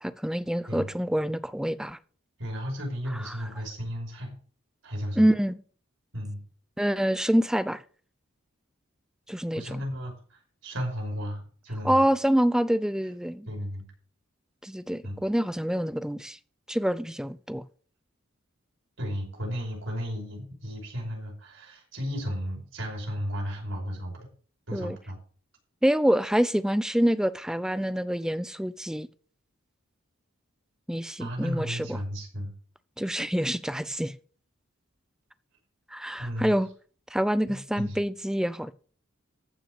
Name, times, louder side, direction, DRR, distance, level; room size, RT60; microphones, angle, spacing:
voice 1, 0.0-2.0 5.2-5.5 6.8-7.8 9.3-9.8 11.8-13.5 14.6-16.4 16.7-17.6 24.7-25.0 25.8-29.1 30.9-32.0 33.0-34.1 35.9-36.7 37.1-38.7, equal, 5° right, 0.5 m, -26 dB
voice 2, 2.4-4.3 4.8-5.3 6.1-6.4 9.5-12.1 13.5-13.9 15.0-15.2 19.0-24.3 24.7-25.2 31.2-32.5 36.2-36.5 37.5-38.0, equal, 70° right, 5.6 m, -34 dB
14.0 x 6.1 x 6.9 m
head